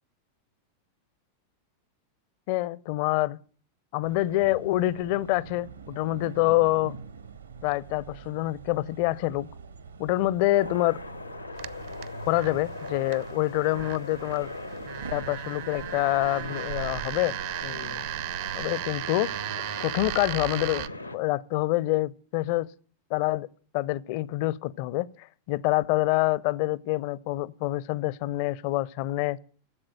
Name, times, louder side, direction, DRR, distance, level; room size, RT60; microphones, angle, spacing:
voice 1, 2.5-3.4 3.9-7.0 7.6-9.5 10.0-11.0 12.3-14.5 15.1-17.3 17.6-18.0 18.5-19.3 19.8-20.9 21.1-22.7 23.1-23.5 23.7-29.4, left 17 dB, 45° left, 0.5 m, -26 dB
sound 1, 4.0-18.9, right 5 dB, 75° right, 1.4 m, -44 dB
sound 2, 10.5-21.2, left 2 dB, 85° left, 0.9 m, -40 dB
sound 3, 11.6-20.9, right 14 dB, 50° right, 0.6 m, -36 dB
14.5 x 7.7 x 8.9 m
figure-of-eight pair, 90°, 0 cm